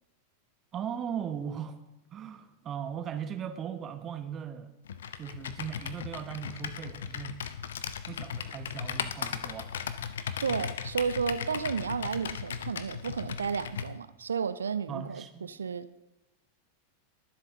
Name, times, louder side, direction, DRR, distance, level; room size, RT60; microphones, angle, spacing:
voice 1, 0.7-1.8 2.1-4.7 5.2-7.4 8.1-9.7 14.9-15.5, right 8 dB, 30° right, 1.0 m, -38 dB
Computer keyboard, 4.9-13.9, left 8 dB, 60° left, 0.6 m, -37 dB
voice 2, 10.4-16.0, right 6 dB, 70° right, 0.5 m, -32 dB
22.0 x 7.5 x 3.7 m
figure-of-eight pair, 90°, 0 cm